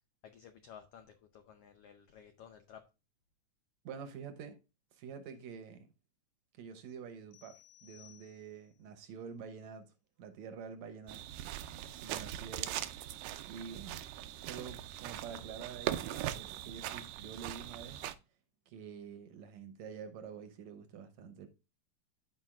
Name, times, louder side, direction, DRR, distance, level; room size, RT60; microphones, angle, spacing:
voice 1, 0.2-1.1 1.3-2.8, left 8 dB, 85° left, 1.3 m, -54 dB
voice 2, 3.8-4.6 4.9-5.9 6.5-9.9 10.2-11.2 11.9-12.8 13.5-14.0 14.4-18.0 18.7-21.5, right 6 dB, 70° right, 2.0 m, -47 dB
sound 1, 7.3-8.8, left 15 dB, 70° left, 1.9 m, -60 dB
sound 2, 11.1-18.1, right 12 dB, 85° right, 2.2 m, -41 dB
13.0 x 4.9 x 2.4 m
omnidirectional pair, 3.7 m